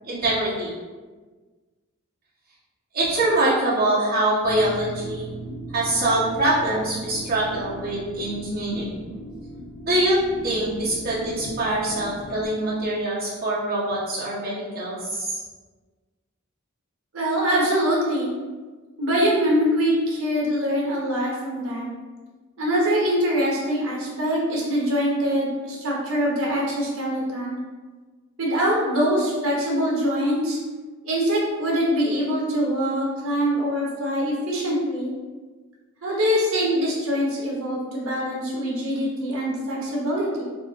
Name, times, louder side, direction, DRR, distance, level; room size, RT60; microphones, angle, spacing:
voice 1, 0.0-0.7 2.9-5.3 5.7-9.0 9.9-10.2 10.4-15.4, right 1 dB, 45° right, -8 dB, 1.4 m, -24 dB
sound 1, 4.4-12.5, right 1 dB, 75° left, 1.5 m, -38 dB
voice 2, 17.1-18.3 19.0-21.9 22.6-27.6 28.4-30.6 31.0-35.1 36.0-40.4, equal, 70° right, -4 dB, 1.2 m, -23 dB
4.3 x 2.1 x 3.7 m, 1.4 s
head